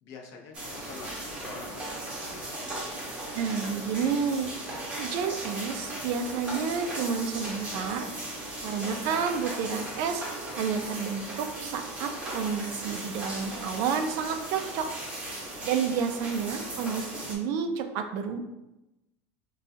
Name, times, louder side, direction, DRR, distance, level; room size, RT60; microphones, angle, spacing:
voice 1, 0.0-2.6, left 4 dB, 50° left, 2 dB, 0.6 m, -47 dB
sound 1, 0.5-17.4, right 1 dB, 20° right, 0.8 m, -37 dB
voice 2, 3.3-4.5 5.0-8.1 8.6-10.2 10.5-14.9 15.6-18.4, right 6 dB, 50° right, 7 dB, 0.4 m, -30 dB
4.3 x 2.3 x 2.6 m, 0.95 s
supercardioid pair, 150°, 7 cm